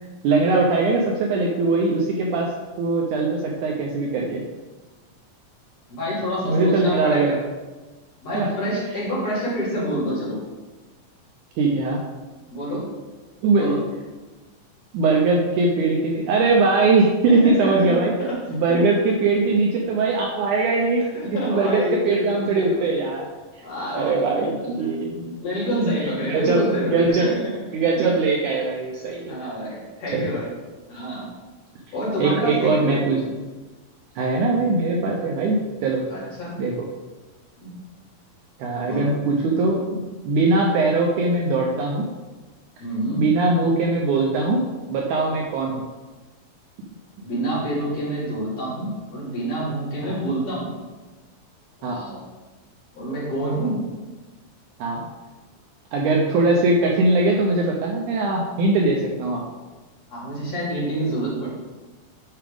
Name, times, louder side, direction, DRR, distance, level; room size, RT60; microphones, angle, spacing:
voice 1, 0.2-2.5 2.8-4.4 6.4-7.3 8.3-8.5 11.6-12.0 13.4-13.7 14.9-18.1 18.5-21.0 21.3-23.3 23.9-25.4 26.3-27.3 27.7-29.3 30.1-30.3 32.2-33.2 34.2-36.3 36.6-36.9 38.6-42.0 43.2-44.6 44.9-45.8 50.1-50.2 51.8-52.0 54.8-55.0 55.9-59.4, right 3 dB, 75° right, -1 dB, 1.9 m, -21 dB
voice 2, 5.9-7.4 8.2-10.4 12.5-12.9 13.5-13.8 17.4-18.0 21.1-22.9 23.6-24.9 25.4-27.4 28.0-28.1 29.3-30.5 30.9-31.3 31.9-33.0 36.1-36.5 37.6-37.7 38.8-39.1 42.8-43.2 47.2-50.7 51.8-52.2 53.0-53.8 60.1-61.5, equal, 50° left, -8 dB, 3.5 m, -27 dB
9.2 x 4.8 x 3.5 m, 1.2 s
omnidirectional pair, 4.1 m